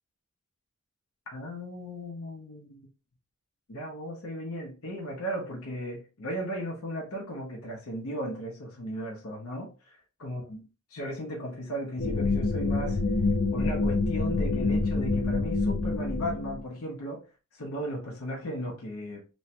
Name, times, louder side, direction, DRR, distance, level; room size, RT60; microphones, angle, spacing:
voice 1, 1.3-2.9 3.7-10.6 10.9-13.0 13.5-17.2 17.5-19.2, equal, 90° left, 0.8 m, -36 dB
sound 1, 12.0-16.6, left 3 dB, 60° left, 0.6 m, -27 dB
3.0 x 2.2 x 2.8 m
head